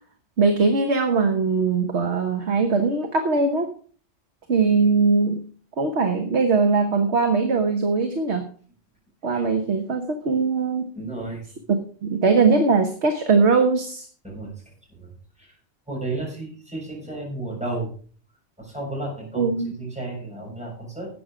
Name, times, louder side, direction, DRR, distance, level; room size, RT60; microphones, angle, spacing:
voice 1, 0.4-3.7 4.5-5.5 5.8-8.5 9.2-10.9 11.7-14.1 19.3-19.7, right 4 dB, 65° right, 6 dB, 1.5 m, -21 dB
voice 2, 10.9-11.4 14.2-14.5 15.0-15.1 15.4-15.5 15.9-17.9 18.6-21.1, right 2 dB, 5° right, -2 dB, 7.0 m, -32 dB
12.5 x 8.7 x 5.0 m, 0.43 s
omnidirectional pair, 1.3 m